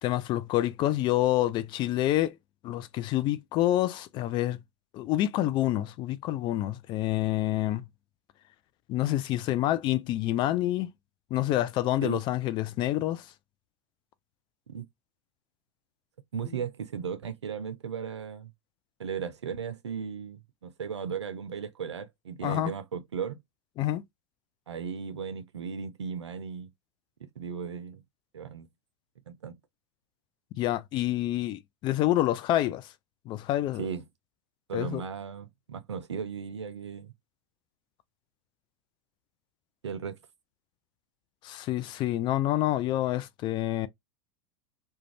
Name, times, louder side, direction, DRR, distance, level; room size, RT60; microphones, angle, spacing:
voice 1, 0.0-2.3 2.6-4.6 4.9-7.8 8.9-10.9 11.3-13.3 22.4-22.7 23.8-24.0 30.6-32.8 33.3-33.9 34.7-35.0 41.4-43.9, left 14 dB, 35° left, 0.4 m, -27 dB
voice 2, 16.3-18.5 19.0-23.4 24.7-26.7 27.4-28.0 28.3-28.7 29.3-29.6 33.8-34.0 34.7-37.1 39.8-40.2, right 7 dB, 80° right, 0.5 m, -36 dB
2.4 x 2.3 x 3.0 m
figure-of-eight pair, 90°, 14 cm